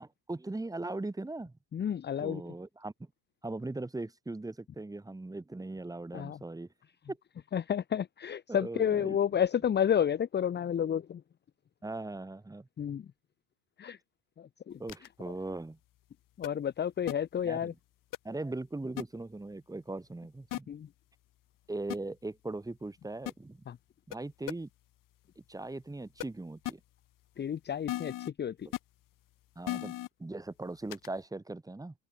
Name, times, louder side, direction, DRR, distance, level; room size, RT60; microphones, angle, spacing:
voice 1, 0.0-1.5 2.2-2.9 3.4-6.7 7.1-7.2 8.5-9.4 11.8-12.7 14.8-15.8 17.4-17.8 18.2-20.7 21.7-23.7 24.1-24.7 25.4-26.8 28.6-28.7 29.6-29.9 30.2-31.9, right 2 dB, 10° right, 7.3 m, -39 dB
voice 2, 1.7-2.4 6.1-6.4 7.5-11.2 12.8-13.0 13.8-14.0 14.4-14.8 16.4-17.7 20.7-20.9 23.7-23.8 27.4-28.7, left 9 dB, 20° left, 1.2 m, -31 dB
sound 1, 14.9-15.1 16.4-16.5 17.1-17.2 18.1-18.2 19.0-19.1 20.5-20.6 21.9-22.0 23.3-23.4 24.1-24.2 24.5-24.6 26.2-26.3 26.6-26.7 27.9-28.3 28.7-28.8 29.7-30.1 30.9-31.1, left 15 dB, 45° left, 3.5 m, -35 dB
open air
cardioid pair, 145°, 45 cm